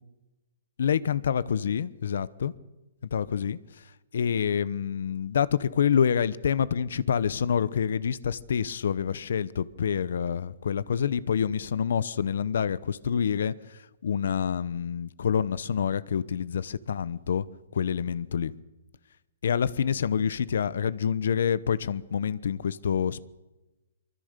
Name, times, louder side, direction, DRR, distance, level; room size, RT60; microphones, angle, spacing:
voice 1, 0.8-2.5 3.1-3.6 4.1-17.5 17.7-18.5 19.4-23.2, left 7 dB, 55° left, 0.9 m, -27 dB
24.0 x 24.0 x 6.7 m
hypercardioid pair, 180°, 0 cm